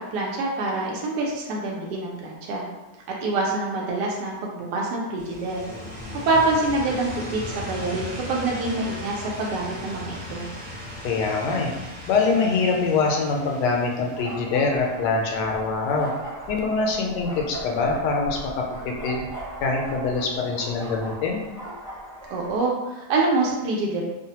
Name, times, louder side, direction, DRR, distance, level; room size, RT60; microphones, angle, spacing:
voice 1, 0.1-2.6 3.2-5.6 6.2-10.5 22.3-24.0, right 2 dB, 80° right, -2 dB, 1.2 m, -26 dB
sound 1, 5.2-15.9, left 1 dB, 55° right, 1.0 m, -38 dB
voice 2, 11.0-11.7 12.1-16.1 16.5-19.2 19.6-21.4, left 4 dB, 85° left, 0 dB, 1.2 m, -24 dB
sound 2, 14.2-22.7, right 1 dB, 25° left, 0.4 m, -38 dB
3.1 x 2.1 x 2.8 m, 1.1 s
omnidirectional pair, 1.8 m